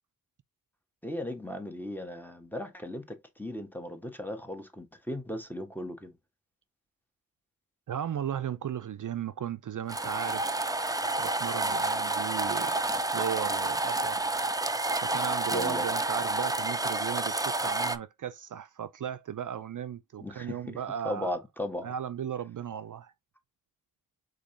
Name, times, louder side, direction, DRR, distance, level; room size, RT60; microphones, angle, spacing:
voice 1, 1.0-6.1 15.5-15.9 20.2-20.8 21.0-21.9, left 1 dB, 5° left, 1.2 m, -37 dB
voice 2, 7.9-10.8 11.2-12.8 13.1-14.3 15.0-21.3 21.8-23.1, right 9 dB, 60° right, 0.5 m, -36 dB
sound 1, 9.9-18.0, right 2 dB, 10° right, 0.5 m, -29 dB
5.1 x 3.8 x 2.7 m
cardioid pair, 60°, 35 cm